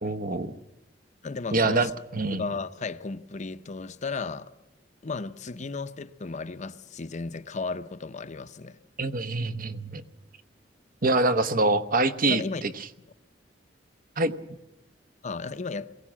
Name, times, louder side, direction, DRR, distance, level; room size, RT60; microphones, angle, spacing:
voice 1, 0.0-0.6 1.5-2.4 9.0-10.0 11.0-12.7 14.2-14.3, right 2 dB, 50° right, 1.0 m, -25 dB
voice 2, 1.2-1.9 2.3-4.5 5.0-8.8 12.3-12.6 15.2-15.9, left 4 dB, 40° left, 0.7 m, -34 dB
22.0 x 17.0 x 7.4 m
head